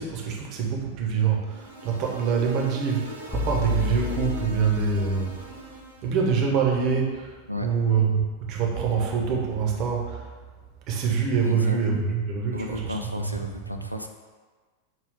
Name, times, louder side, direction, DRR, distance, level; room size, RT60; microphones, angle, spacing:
voice 1, 0.0-10.3 10.9-13.3, right 6 dB, 40° right, -1 dB, 0.8 m, -25 dB
sound 1, 1.5-6.3, equal, 75° right, 0.7 m, -41 dB
sound 2, 3.3-5.4, left 5 dB, 15° left, 0.6 m, -31 dB
voice 2, 11.4-11.8 12.5-14.1, left 1 dB, 90° left, 5 dB, 0.3 m, -33 dB
5.5 x 2.3 x 3.5 m, 1.4 s
figure-of-eight pair, 90°, 0 cm